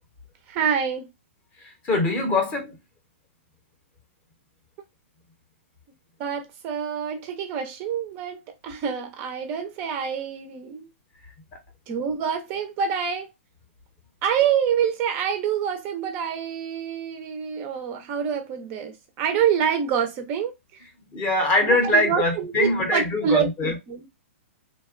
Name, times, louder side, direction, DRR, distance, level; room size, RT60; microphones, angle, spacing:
voice 1, 0.5-1.1 6.2-10.9 11.9-13.3 14.2-20.5 21.7-24.1, right 8 dB, 25° right, 0.4 m, -26 dB
voice 2, 1.6-2.8 21.1-23.8, left 2 dB, 20° left, 0.6 m, -23 dB
2.8 x 2.1 x 2.4 m
hypercardioid pair, 155°, 7 cm